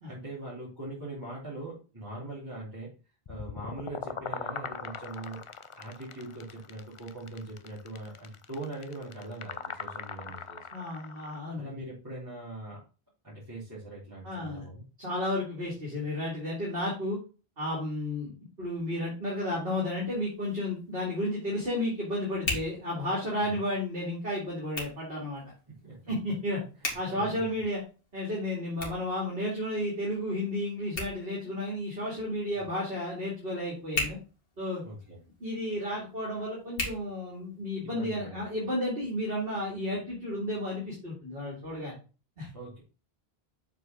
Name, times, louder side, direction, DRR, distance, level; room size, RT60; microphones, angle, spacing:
voice 1, 0.1-2.9 3.3-5.4 5.8-10.7 11.6-12.8 13.2-14.8 23.4-23.6 25.8-26.1 27.1-27.4 32.5-32.6 34.8-35.2 37.8-38.5 42.5-42.8, right 2 dB, 20° right, -10 dB, 3.5 m, -41 dB
sound 1, 3.3-11.4, left 6 dB, 40° left, 0.5 m, -40 dB
voice 2, 10.7-11.8 14.2-14.7 15.0-17.2 17.6-18.3 18.6-25.4 26.1-26.6 26.9-27.8 28.1-34.2 34.6-34.8 35.4-42.0 42.4-42.5, left 1 dB, 65° right, -4 dB, 2.7 m, -32 dB
Hands, 20.2-37.8, left 2 dB, 65° left, 2.4 m, -42 dB
7.6 x 4.7 x 3.8 m, 0.34 s
omnidirectional pair, 1.0 m